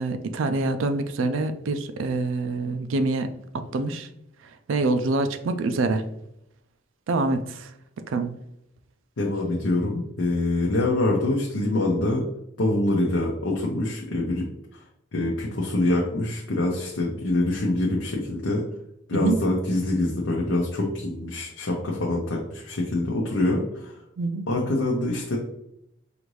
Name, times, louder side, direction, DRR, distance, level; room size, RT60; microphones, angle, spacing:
voice 1, 0.0-3.3 3.5-4.1 4.7-6.0 7.1-7.7 8.1-8.4 19.1-19.4 24.2-24.4, right 3 dB, 80° right, 9 dB, 0.4 m, -25 dB
voice 2, 9.2-12.3 12.6-14.5 14.7-14.8 15.1-18.6 19.1-23.9 24.5-25.4, left 2 dB, 75° left, -2 dB, 0.7 m, -25 dB
4.9 x 2.6 x 3.1 m, 0.79 s
head